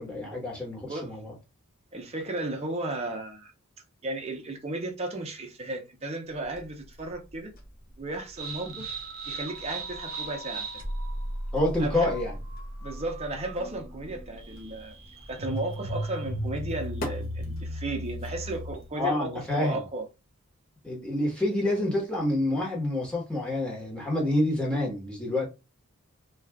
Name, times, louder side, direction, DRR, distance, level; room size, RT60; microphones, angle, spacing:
voice 1, 0.0-1.3 11.5-12.3 18.9-19.8 20.8-25.5, left 1 dB, 5° left, 1.1 m, -28 dB
voice 2, 1.9-3.5 4.0-7.5 8.0-8.9 9.3-10.7 11.8-12.1 12.8-15.0 15.3-20.0, right 2 dB, 30° right, 0.7 m, -34 dB
sound 1, 6.3-18.9, equal, 45° left, 0.7 m, -47 dB
sound 2, 8.4-19.0, right 1 dB, 65° right, 0.9 m, -36 dB
2.4 x 2.3 x 3.4 m
head